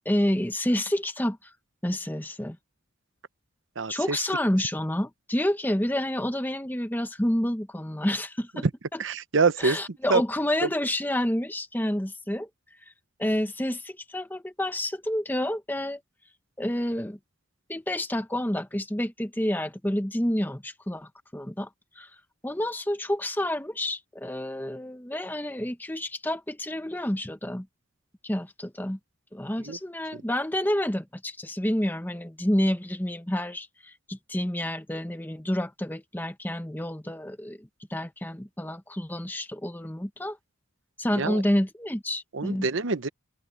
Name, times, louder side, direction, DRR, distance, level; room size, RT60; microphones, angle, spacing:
voice 1, 0.0-1.5 1.8-2.6 3.9-8.6 8.9-9.0 9.6-12.5 13.2-16.0 16.6-17.2 17.7-21.7 22.0-22.1 22.4-27.7 28.2-29.0 29.3-40.4 41.0-42.7, left 1 dB, 10° left, 0.9 m, -29 dB
voice 2, 3.8-4.2 9.0-9.8 10.1-10.2 10.6-10.7 29.6-29.8 30.1-30.2 41.2-41.4 42.3-43.1, right 4 dB, 70° right, 0.8 m, -25 dB
head